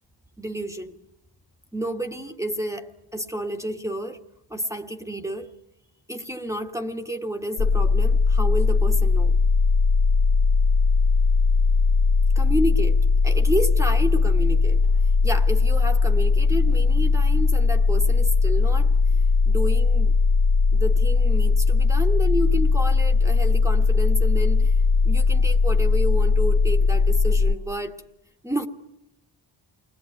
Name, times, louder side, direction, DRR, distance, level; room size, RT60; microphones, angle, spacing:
voice 1, 0.4-1.0 1.7-4.2 4.5-5.5 6.1-9.3 12.3-13.0 13.2-20.1 20.7-24.7 25.0-28.0 28.4-28.7, right 1 dB, 5° right, 5 dB, 1.6 m, -30 dB
sound 1, 7.6-27.5, left 4 dB, 85° left, 1.8 m, -19 dB
29.0 x 21.5 x 9.6 m, 0.84 s
wide cardioid pair, 115°, 43 cm